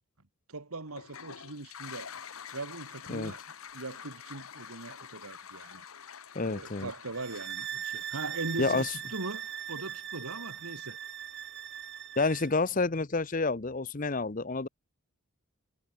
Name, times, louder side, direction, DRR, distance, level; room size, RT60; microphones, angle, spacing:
voice 1, 0.5-2.1 2.5-3.4 3.7-5.9 6.4-11.0, right 3 dB, 90° right, 2.0 m, -40 dB
Toilet flush, 0.9-9.8, left 7 dB, 80° left, 1.2 m, -48 dB
voice 2, 6.3-6.9 8.6-8.9 12.2-14.7, left 3 dB, 40° left, 0.8 m, -29 dB
sound 1, 7.1-12.5, right 9 dB, 55° right, 2.6 m, -40 dB
head